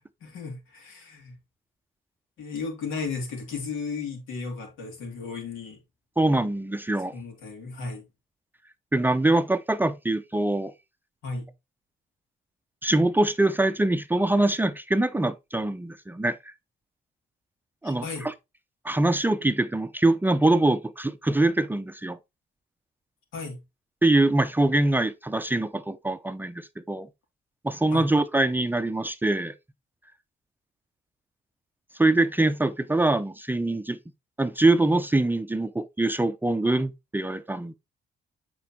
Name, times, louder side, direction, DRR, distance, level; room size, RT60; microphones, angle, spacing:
voice 1, 0.2-1.3 2.4-5.8 7.1-8.0 11.2-11.5 17.8-18.3 23.3-23.6 27.9-28.0, left 4 dB, 90° left, 2.8 m, -34 dB
voice 2, 6.2-7.1 8.9-10.7 12.8-16.4 17.8-18.3 18.8-22.2 24.0-27.1 27.6-29.5 32.0-34.0 34.4-37.7, right 2 dB, 10° right, 0.5 m, -23 dB
8.3 x 4.5 x 3.0 m
cardioid pair, 90°, 20 cm